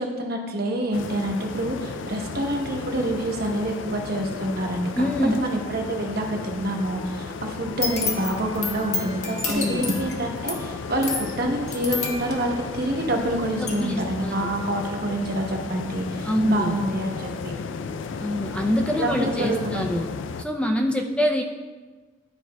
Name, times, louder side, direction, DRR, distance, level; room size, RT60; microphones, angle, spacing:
voice 1, 0.0-17.5 18.9-19.8, right 1 dB, 55° right, 1 dB, 0.9 m, -27 dB
sound 1, 0.9-20.4, left 5 dB, 80° left, 0.3 m, -34 dB
voice 2, 5.0-5.5 9.4-9.8 13.6-14.5 16.2-16.8 18.2-20.1 20.4-21.4, equal, 5° left, 1 dB, 0.4 m, -25 dB
sound 2, 7.6-13.3 13.7-13.8, left 3 dB, 40° left, 0.9 m, -31 dB
11.5 x 4.5 x 2.2 m, 1.3 s
head